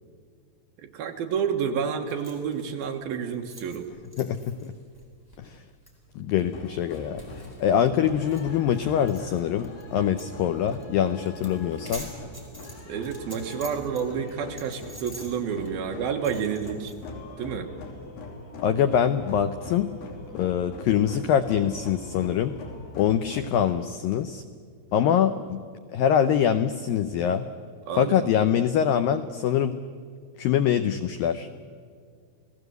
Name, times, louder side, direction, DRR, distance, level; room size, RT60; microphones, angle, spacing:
voice 1, 0.8-3.9 12.9-16.9 17.4-17.7 27.9-28.6, right 7 dB, 65° right, 4 dB, 3.0 m, -30 dB
sound 1, 2.1-9.8 10.2-10.3 10.6-10.8 11.2-14.0 14.3-17.0, equal, 5° left, 3.6 m, -46 dB
voice 2, 4.2-4.7 5.4-5.6 6.2-7.2 7.6-12.1 18.6-19.9 20.3-22.6 23.0-24.4 24.9-25.6 25.9-27.5 28.0-29.8 30.4-31.5, left 9 dB, 85° left, 10 dB, 2.0 m, -24 dB
sound 2, 6.4-23.7, left 2 dB, 65° left, 4.9 m, -42 dB
29.0 x 18.0 x 8.0 m, 2.1 s
omnidirectional pair, 5.0 m